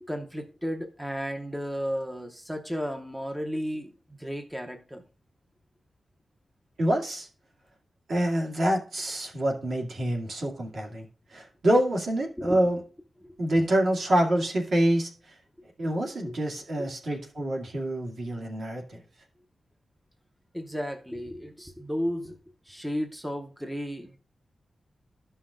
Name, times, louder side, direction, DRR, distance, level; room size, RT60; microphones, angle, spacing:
voice 1, 0.0-3.9 4.2-5.0 12.4-12.6 20.5-22.4 22.6-24.2, equal, 5° right, 5 dB, 0.6 m, -33 dB
voice 2, 6.8-7.3 8.1-12.8 13.4-15.3 15.8-19.0, right 1 dB, 60° right, -1 dB, 2.2 m, -26 dB
14.0 x 5.6 x 2.4 m, 0.39 s
wide cardioid pair, 180°, 0 cm